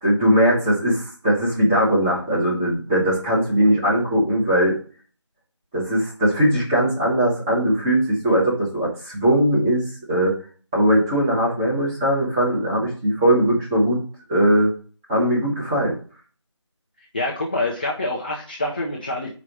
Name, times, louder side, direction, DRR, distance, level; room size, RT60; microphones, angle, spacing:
voice 1, 0.0-4.7 5.7-10.4 10.7-14.0 14.3-14.7 15.1-15.9, equal, 10° right, -6 dB, 1.3 m, -20 dB
voice 2, 17.1-19.3, left 2 dB, 20° left, -4 dB, 0.7 m, -26 dB
4.9 x 4.9 x 6.0 m, 0.40 s
figure-of-eight pair, 165°, 16 cm